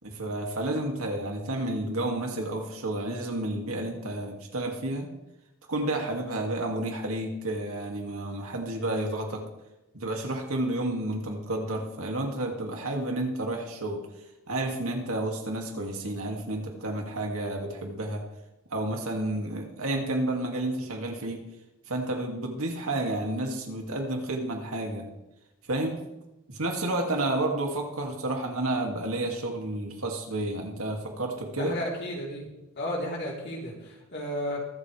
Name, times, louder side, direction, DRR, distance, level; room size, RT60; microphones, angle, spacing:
voice 1, 0.0-5.1 5.7-9.4 9.9-14.0 14.5-18.2 18.7-21.4 21.9-25.1 25.7-26.0 26.5-31.7, right 1 dB, 75° right, 1 dB, 2.4 m, -31 dB
voice 2, 31.6-32.5 32.8-34.6, equal, 50° left, -3 dB, 3.6 m, -33 dB
23.0 x 8.0 x 3.4 m, 0.94 s
head